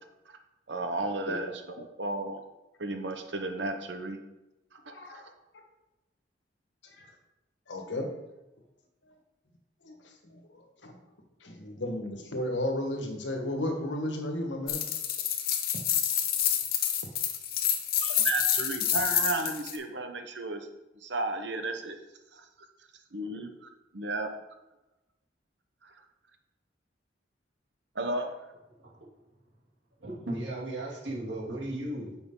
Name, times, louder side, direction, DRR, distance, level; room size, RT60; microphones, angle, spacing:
voice 1, 0.7-2.4 2.8-4.2 4.7-5.3 18.0-20.7 20.9-22.0 22.3-22.5 23.1-24.3 25.8-26.0 27.9-28.3, right 2 dB, 70° right, 6 dB, 1.1 m, -34 dB
voice 2, 4.9-5.2 6.9-7.1 7.7-8.1 9.8-9.9 10.2-11.0 11.4-14.8, left 1 dB, 85° left, 3 dB, 1.6 m, -34 dB
sound 1, 14.7-19.8, left 9 dB, 55° left, 1.0 m, -28 dB
voice 3, 30.0-32.3, right 1 dB, 85° right, -4 dB, 2.9 m, -36 dB
9.9 x 6.8 x 3.9 m, 0.99 s
head